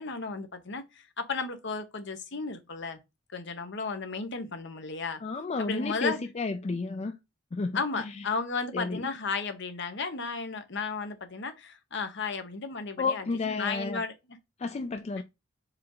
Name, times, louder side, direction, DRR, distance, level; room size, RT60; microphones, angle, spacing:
voice 1, 0.0-3.0 3.3-5.2 5.6-6.2 7.7-14.1 15.2-15.3, left 4 dB, 60° left, 1.0 m, -34 dB
voice 2, 5.2-7.2 7.5-8.3 8.7-9.1 13.0-14.0 14.6-15.2, left 3 dB, 30° left, 0.4 m, -32 dB
4.9 x 3.5 x 3.0 m
head